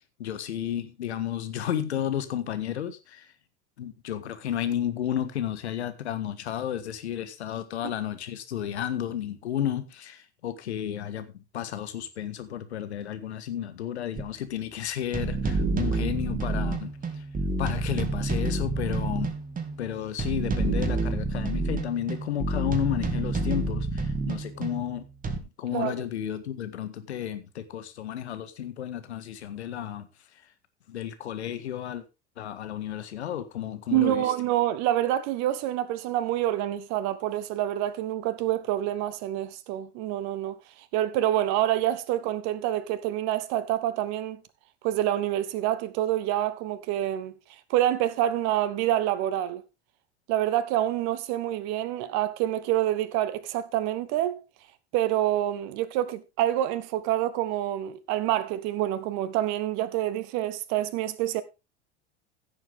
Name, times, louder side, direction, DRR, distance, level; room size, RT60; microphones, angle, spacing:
voice 1, 0.2-3.3 3.8-17.2 17.6-19.4 19.8-25.0 25.6-30.1 30.9-32.0 32.4-34.3, left 10 dB, 75° left, 1.8 m, -32 dB
sound 1, 14.2-14.3 15.1-25.4, right 3 dB, 25° right, 2.5 m, -29 dB
voice 2, 25.7-26.0 33.9-40.6 40.9-44.4 44.8-47.3 47.7-49.6 50.3-54.4 54.9-61.4, right 13 dB, 50° right, 1.2 m, -27 dB
16.0 x 7.2 x 3.6 m
figure-of-eight pair, 75°, 34 cm